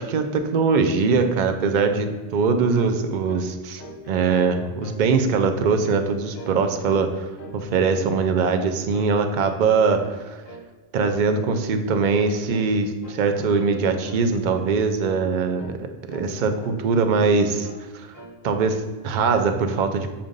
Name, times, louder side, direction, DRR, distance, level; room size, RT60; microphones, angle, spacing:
voice 1, 0.0-7.3 7.5-10.4 10.9-15.8 16.1-17.7 17.9-18.1 18.4-20.1, right 4 dB, 55° right, 7 dB, 0.6 m, -22 dB
sound 1, 2.8-3.0 3.3-3.5 3.8-5.0 5.3-5.6 5.8-6.1 6.3-6.6 6.9-7.6 7.9-8.7 8.9-9.1 9.4-9.6 9.9-10.2 10.5-10.7 11.0-11.2 11.5-11.7 12.0-12.2 12.5-12.7 13.0-13.2 13.5-13.8 14.0-14.3 14.5-14.8 15.1-15.8 16.1-16.8 17.1-17.9 18.1-18.9, equal, 45° left, 0.8 m, -42 dB
7.3 x 2.6 x 5.1 m, 1.3 s
omnidirectional pair, 1.3 m